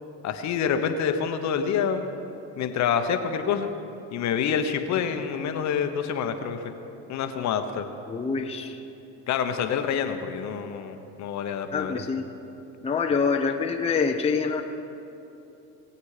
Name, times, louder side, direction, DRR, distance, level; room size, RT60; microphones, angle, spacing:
voice 1, 0.2-2.2 2.6-3.7 4.1-6.6 7.1-7.8 9.3-12.0, left 7 dB, 50° left, 7 dB, 1.1 m, -27 dB
voice 2, 8.1-8.8 11.7-12.2 12.8-14.6, left 5 dB, 15° left, 3 dB, 0.8 m, -25 dB
20.5 x 8.1 x 5.0 m, 2.9 s
supercardioid pair, 100°, 37 cm